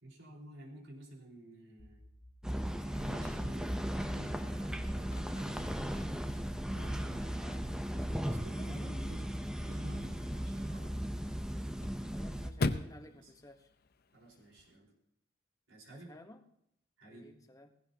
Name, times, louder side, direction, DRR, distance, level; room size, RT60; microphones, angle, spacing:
voice 1, 0.0-2.0 2.8-6.0 6.7-7.4 7.9-9.3 9.6-11.0 13.1-13.3 14.1-14.9 15.7-16.1 17.0-17.3, right 1 dB, 75° right, -2 dB, 4.6 m, -51 dB
sound 1, 1.8-4.8 5.2-8.2, left 1 dB, 70° left, 1.3 m, -56 dB
sound 2, 2.4-12.5, equal, 5° right, 0.7 m, -37 dB
Chirp tweet / Car / Slam, 4.8-14.8, left 2 dB, 55° left, 0.7 m, -44 dB
voice 2, 7.2-7.9 8.5-9.0 12.1-13.7 15.9-16.4 17.0-17.8, left 1 dB, 20° left, 6 dB, 1.1 m, -54 dB
18.0 x 16.0 x 2.9 m, 0.74 s
head